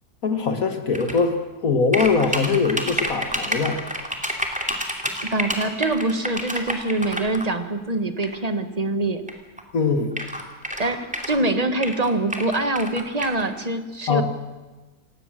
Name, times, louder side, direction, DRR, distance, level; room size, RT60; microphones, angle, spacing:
voice 1, 0.2-3.8 9.7-10.1 14.1-14.2, left 4 dB, 65° left, 7 dB, 2.1 m, -22 dB
sound 1, 0.9-1.2 1.9-7.4 8.2-8.4 9.3-9.4 9.6-9.7 10.1-11.4 11.8-13.4, equal, 5° right, 2.7 m, -29 dB
voice 2, 5.3-9.2 10.8-14.2, right 2 dB, 25° right, 8 dB, 1.7 m, -24 dB
28.0 x 17.5 x 7.6 m, 1.2 s
omnidirectional pair, 1.6 m